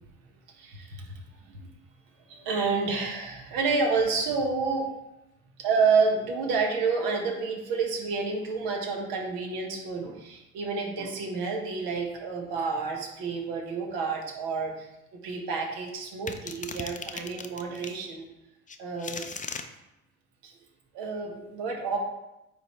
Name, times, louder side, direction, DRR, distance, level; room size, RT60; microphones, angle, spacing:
voice 1, 0.5-1.1 1.6-1.7 2.3-4.9 5.6-14.9 15.2-18.3 18.8-19.2 20.4-20.5 20.9-22.0, right 4 dB, 70° right, 1 dB, 1.6 m, -29 dB
sound 1, 16.3-18.0 18.7-19.7, left 5 dB, 20° left, 0.6 m, -37 dB
9.1 x 3.7 x 3.3 m, 0.92 s
hypercardioid pair, 60°, 37 cm